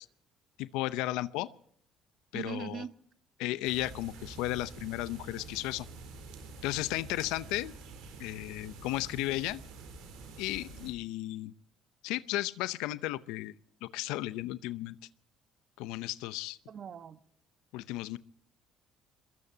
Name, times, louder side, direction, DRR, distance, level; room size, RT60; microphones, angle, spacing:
voice 1, 0.6-1.5 2.3-2.8 3.4-5.9 6.6-7.7 8.2-9.6 10.4-11.5 12.0-15.0 15.8-16.6 17.7-18.2, left 17 dB, 85° left, 16 dB, 0.6 m, -34 dB
voice 2, 2.3-2.9 16.7-17.2, right 7 dB, 50° right, 12 dB, 1.2 m, -40 dB
sound 1, 3.6-10.9, right 3 dB, 85° right, 4.6 m, -47 dB
23.0 x 22.0 x 2.8 m, 0.64 s
supercardioid pair, 85°, 0 cm